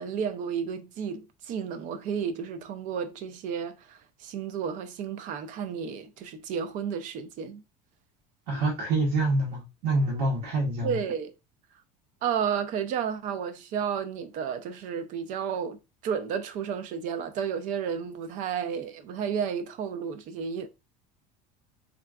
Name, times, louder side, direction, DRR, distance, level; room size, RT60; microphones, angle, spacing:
voice 1, 0.0-7.6 10.8-11.3 12.2-20.7, right 7 dB, 45° right, 0.4 m, -32 dB
voice 2, 8.5-11.0, right 2 dB, 70° right, 1.1 m, -26 dB
3.7 x 2.3 x 2.3 m
cardioid pair, 155°, 19 cm